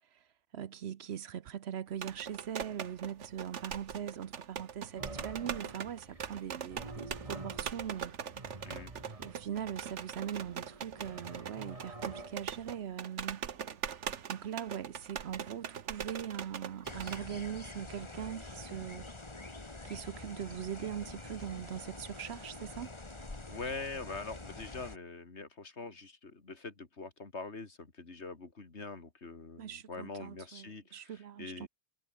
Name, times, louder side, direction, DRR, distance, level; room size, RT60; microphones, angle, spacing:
voice 1, 0.5-8.1 9.2-13.5 14.3-19.1 19.8-22.9 29.6-31.7, right 9 dB, 70° right, 1.0 m, -41 dB
sound 1, 1.9-17.2, right 8 dB, 90° right, 1.4 m, -42 dB
sound 2, 5.0-12.7, right 2 dB, 30° right, 2.7 m, -49 dB
voice 2, 8.6-8.9 23.5-31.7, left 3 dB, 70° left, 2.9 m, -44 dB
sound 3, 16.8-25.0, left 2 dB, 25° left, 1.8 m, -46 dB
omnidirectional pair, 1.2 m